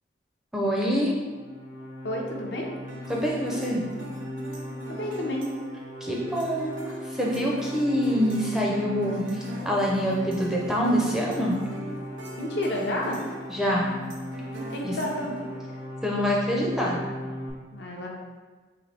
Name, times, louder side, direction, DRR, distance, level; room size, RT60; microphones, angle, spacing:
voice 1, 0.5-1.1 3.1-3.8 6.0-9.2 9.6-11.6 13.5-13.9 14.8-15.0 16.0-17.0, equal, 5° right, -3 dB, 0.4 m, -25 dB
sound 1, 1.2-17.5, equal, 90° left, 0.9 m, -38 dB
voice 2, 2.0-2.7 4.9-5.5 12.4-13.2 14.7-15.5 17.7-18.1, left 1 dB, 60° left, 0 dB, 0.6 m, -30 dB
sound 2, 2.9-16.1, right 1 dB, 80° right, 0.6 m, -41 dB
4.0 x 3.0 x 3.3 m, 1.3 s
head